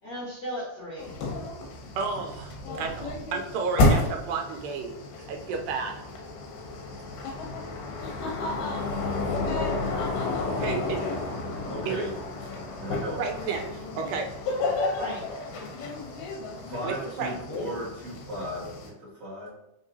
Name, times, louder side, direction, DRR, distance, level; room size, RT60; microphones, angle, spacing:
voice 1, 0.0-1.1 10.5-11.6 14.4-15.9, equal, 40° left, -10 dB, 1.6 m, -39 dB
sound 1, 1.0-18.9, left 2 dB, 85° left, 2.5 m, -31 dB
voice 2, 2.0-4.9 5.2-6.0 10.6-11.0 11.9-12.0 13.2-14.3 16.8-17.4, right 5 dB, 85° right, 3 dB, 2.3 m, -32 dB
voice 3, 11.6-12.2 12.8-13.2 16.7-19.5, equal, 40° right, -8 dB, 1.3 m, -36 dB
5.1 x 3.7 x 2.7 m, 0.85 s
omnidirectional pair, 3.8 m